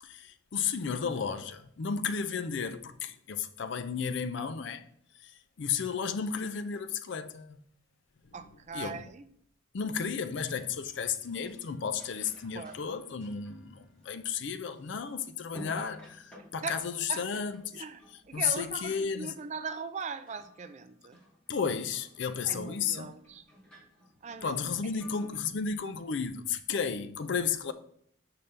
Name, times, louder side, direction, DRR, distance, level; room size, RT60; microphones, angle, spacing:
voice 1, 0.0-4.9 5.2-7.6 8.7-9.1 9.7-17.9 18.3-19.3 21.5-23.1 24.4-27.7, left 6 dB, 60° left, 0.4 m, -33 dB
voice 2, 8.3-9.3 12.5-12.7 16.6-16.7 17.1-17.3 17.7-18.0 18.3-21.2 22.5-23.4 24.2-24.6, right 5 dB, 35° right, 0.3 m, -39 dB
sound 1, 10.1-15.1 15.4-19.0 19.2-20.0 20.2-25.4, left 1 dB, 5° left, 1.8 m, -54 dB
5.7 x 5.2 x 3.3 m
head